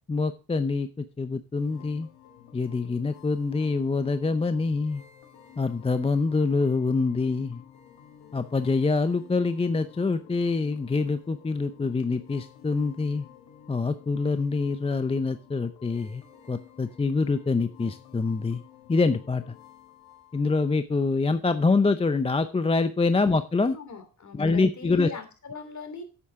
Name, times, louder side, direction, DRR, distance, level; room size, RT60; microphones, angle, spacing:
voice 1, 0.1-2.1 2.5-5.0 5.6-7.6 8.3-13.3 13.7-16.2 16.5-18.6 18.9-19.5 20.3-23.8 24.3-25.1, left 3 dB, 15° left, 11 dB, 0.6 m, -25 dB
sound 1, 1.6-20.8, left 10 dB, 75° left, 2.5 m, -51 dB
voice 2, 23.7-26.0, left 5 dB, 45° left, 7 dB, 2.8 m, -41 dB
8.6 x 8.3 x 3.6 m, 0.32 s
supercardioid pair, 75°, 40 cm